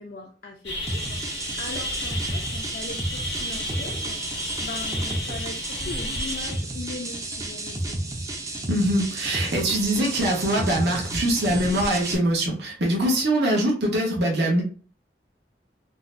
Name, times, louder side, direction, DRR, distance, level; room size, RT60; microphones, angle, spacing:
voice 1, 0.0-8.0, left 3 dB, 50° left, 0 dB, 0.4 m, -39 dB
sound 1, 0.6-6.6, left 1 dB, 85° left, 1.4 m, -33 dB
sound 2, 0.9-12.2, right 1 dB, 20° right, 0.4 m, -32 dB
voice 2, 8.7-14.6, right 1 dB, 70° right, -1 dB, 0.9 m, -23 dB
3.8 x 2.1 x 2.5 m, 0.40 s
head